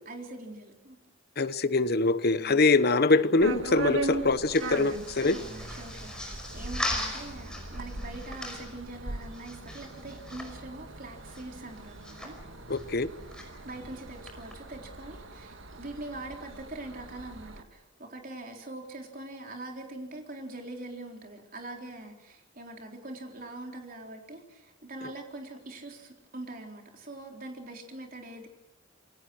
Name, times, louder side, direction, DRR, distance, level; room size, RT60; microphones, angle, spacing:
voice 1, 0.1-1.0 2.3-2.7 4.5-12.4 13.4-28.5, right 2 dB, 45° right, 2 dB, 3.9 m, -43 dB
voice 2, 1.4-5.4 12.7-13.1, left 3 dB, 55° left, 14 dB, 1.0 m, -24 dB
sound 1, 3.4-17.6, right 2 dB, 80° right, 1.7 m, -40 dB
sound 2, 4.2-14.5, left 1 dB, 5° left, 5.3 m, -41 dB
27.5 x 22.5 x 6.3 m, 0.97 s
head